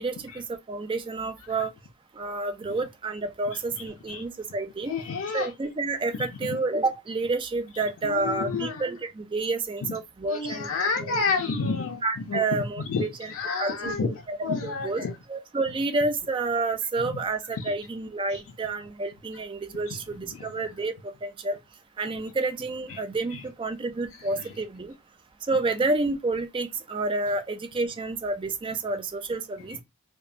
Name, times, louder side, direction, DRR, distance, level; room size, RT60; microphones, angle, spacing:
voice 1, 0.0-1.7 2.1-4.9 5.3-10.7 11.0-11.2 12.0-13.3 13.6-14.4 14.6-15.0 15.3-21.6 22.0-24.9 25.5-29.8, right 3 dB, 25° right, 0.3 m, -29 dB
voice 2, 4.8-5.5 6.1-6.6 8.0-8.8 9.8-10.0 10.2-15.2 17.1-17.2 17.5-17.7 18.3-18.4 19.9-20.0 20.3-20.5 22.9-23.0 23.3-23.4 24.2-24.5 29.7-29.8, left 4 dB, 90° left, 0.4 m, -30 dB
2.9 x 2.1 x 2.4 m
head